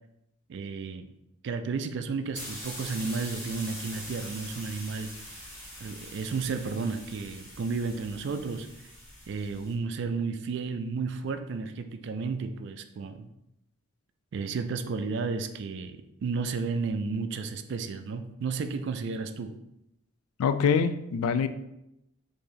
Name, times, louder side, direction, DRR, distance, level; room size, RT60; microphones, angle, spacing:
voice 1, 0.5-1.1 1.4-5.1 5.8-8.7 9.3-13.3 14.3-19.5, right 4 dB, 55° right, 8 dB, 0.3 m, -32 dB
sound 1, 2.3-9.7, equal, 15° left, 1.2 m, -43 dB
voice 2, 20.4-21.5, left 6 dB, 90° left, 11 dB, 0.3 m, -24 dB
4.6 x 2.6 x 3.1 m, 0.85 s
head